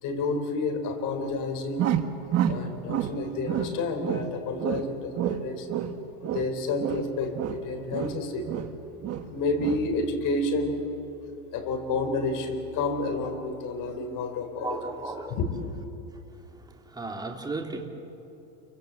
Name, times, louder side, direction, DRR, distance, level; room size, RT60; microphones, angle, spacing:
voice 1, 0.0-1.9 2.5-5.7 6.3-8.6 9.3-10.9 11.5-14.9 15.3-15.7, left 3 dB, 40° left, 6 dB, 4.3 m, -30 dB
sound 1, 1.8-3.2 3.5-4.3 4.6-6.5 6.8-8.8 9.0-9.3 9.6-9.9, right 10 dB, 30° right, 1.5 m, -29 dB
voice 2, 14.6-15.4 16.5-17.9, right 3 dB, 10° right, 2 dB, 2.6 m, -35 dB
29.5 x 24.5 x 8.0 m, 2.9 s
supercardioid pair, 145°, 48 cm